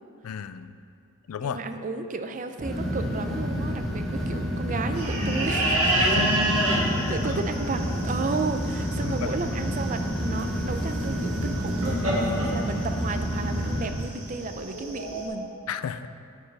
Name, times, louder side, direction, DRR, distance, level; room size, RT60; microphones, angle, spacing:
voice 1, 0.2-0.7 1.3-1.6 6.0-6.5 7.0-7.2 9.0-9.6 15.7-16.1, left 8 dB, 75° left, 12 dB, 0.4 m, -33 dB
voice 2, 1.4-5.9 7.1-15.5, right 3 dB, 35° right, 8 dB, 0.4 m, -33 dB
sound 1, 2.6-13.9, equal, ahead, 1.2 m, -29 dB
sound 2, 5.0-15.3, right 1 dB, 75° right, 1.9 m, -29 dB
9.9 x 7.7 x 3.3 m, 2.5 s
head